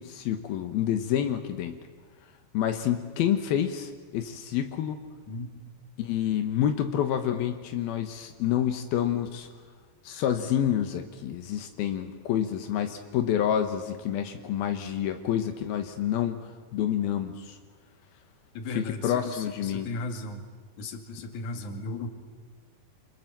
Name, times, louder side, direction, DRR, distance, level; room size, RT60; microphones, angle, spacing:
voice 1, 0.0-1.8 2.5-5.0 6.0-9.5 10.0-16.4 16.7-17.6 18.7-19.9, left 10 dB, 85° left, 7 dB, 3.1 m, -28 dB
voice 2, 18.5-20.5 20.8-22.1, left 2 dB, 55° left, 5 dB, 3.4 m, -36 dB
28.0 x 27.5 x 7.6 m, 1.4 s
omnidirectional pair, 4.3 m